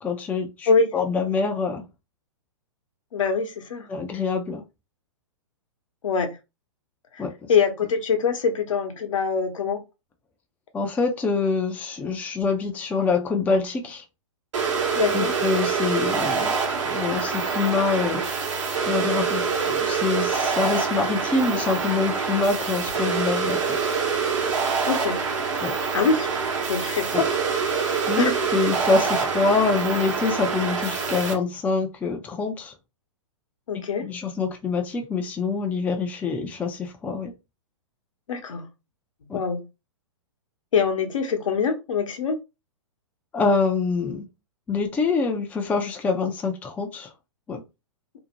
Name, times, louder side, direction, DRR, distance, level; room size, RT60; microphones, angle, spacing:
voice 1, 0.0-1.9 3.9-4.6 7.2-7.3 10.7-14.0 15.1-16.5 16.8-18.2 18.9-24.0 25.6-25.7 27.1-27.2 28.1-32.7 34.0-37.3 39.3-39.4 43.3-44.3 44.7-47.1 47.5-47.6, left 4 dB, 10° left, 0.4 m, -25 dB
voice 2, 3.1-3.9 6.0-6.4 7.1-7.2 7.5-9.8 14.9-15.4 24.9-25.2 25.9-26.3 26.7-27.4 28.2-28.3 33.7-34.1 38.3-38.7 39.3-39.6 40.7-42.4, left 5 dB, 75° left, 0.8 m, -24 dB
sound 1, 14.5-31.3, right 5 dB, 65° right, 0.9 m, -25 dB
2.6 x 2.1 x 2.8 m
hypercardioid pair, 120°, 17 cm